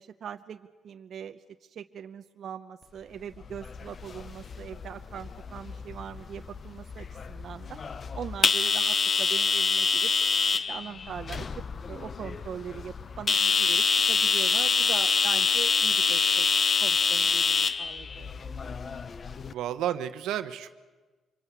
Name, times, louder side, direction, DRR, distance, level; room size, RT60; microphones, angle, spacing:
voice 1, 0.0-7.8 8.2-10.1 10.5-16.5 16.8-18.3, right 8 dB, 60° right, 8 dB, 0.8 m, -41 dB
sound 1, 3.4-19.5, left 5 dB, 40° left, 0.8 m, -27 dB
voice 2, 19.5-20.7, right 11 dB, 85° right, 11 dB, 1.1 m, -31 dB
25.5 x 23.5 x 8.3 m, 1.3 s
cardioid pair, 90°, 0 cm